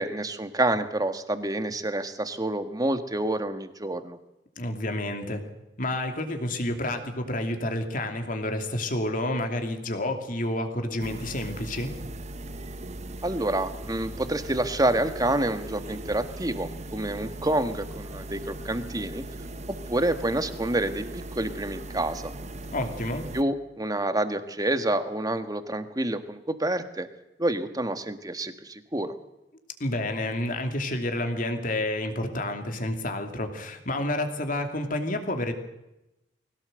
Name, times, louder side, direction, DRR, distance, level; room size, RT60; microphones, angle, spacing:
voice 1, 0.0-4.2 13.2-19.2 19.9-22.3 23.3-27.1 27.4-29.1, right 1 dB, 20° right, 9 dB, 1.6 m, -28 dB
voice 2, 4.6-5.4 5.8-11.9 22.7-23.3 29.8-35.5, left 1 dB, 50° left, 5 dB, 2.8 m, -29 dB
sound 1, 11.0-23.4, right 1 dB, 40° right, 1.1 m, -39 dB
21.5 x 17.5 x 7.9 m, 0.92 s
head